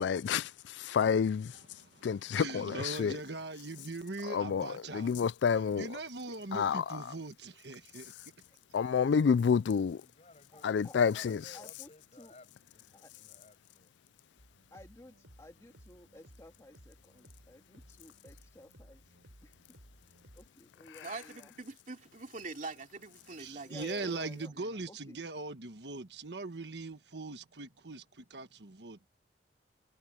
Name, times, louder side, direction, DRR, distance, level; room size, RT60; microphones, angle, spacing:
voice 1, 0.0-1.6 2.0-3.2 4.2-6.0 6.5-7.1 8.7-10.0 10.6-11.4, left 6 dB, 80° left, 0.4 m, -29 dB
voice 2, 1.8-5.1 5.8-8.1 23.4-29.1, right 3 dB, 70° right, 1.4 m, -41 dB
voice 3, 6.3-6.6 10.5-11.0 11.5-12.3 12.9-13.1 14.7-19.6 20.3-21.5 23.6-24.5 24.9-25.2, left 1 dB, 20° left, 2.0 m, -54 dB
voice 4, 10.0-10.7 11.0-13.9, left 2 dB, 40° left, 8.0 m, -57 dB
sound 1, 14.4-20.5, equal, 90° right, 4.0 m, -59 dB
voice 5, 21.0-24.1 24.5-24.8, right 3 dB, 45° right, 3.0 m, -44 dB
head